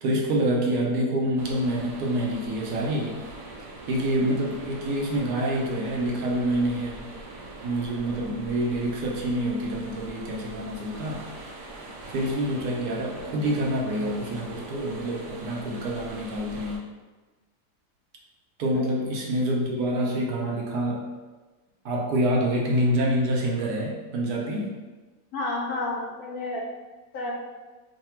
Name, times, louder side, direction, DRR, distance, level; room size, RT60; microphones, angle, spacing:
voice 1, 0.0-3.2 3.9-7.1 7.6-11.2 12.1-16.8 18.6-21.0 21.8-24.7, right 1 dB, 70° right, -2 dB, 1.1 m, -27 dB
sound 1, 1.4-16.8, right 2 dB, 90° right, 1.2 m, -42 dB
voice 2, 25.3-26.6 27.1-27.3, left 2 dB, 70° left, -2 dB, 1.1 m, -30 dB
3.2 x 2.2 x 4.3 m, 1.3 s
omnidirectional pair, 1.8 m